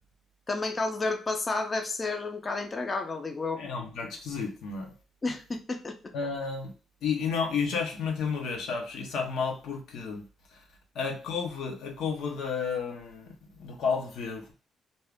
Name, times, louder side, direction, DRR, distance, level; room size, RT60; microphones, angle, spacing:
voice 1, 0.5-3.6 5.2-6.0, left 3 dB, 30° left, 0.5 m, -31 dB
voice 2, 3.6-4.9 6.1-6.7 7.0-10.2 10.9-14.5, left 5 dB, 80° left, 0.8 m, -32 dB
2.7 x 2.4 x 3.4 m
cardioid pair, 90°, 0 cm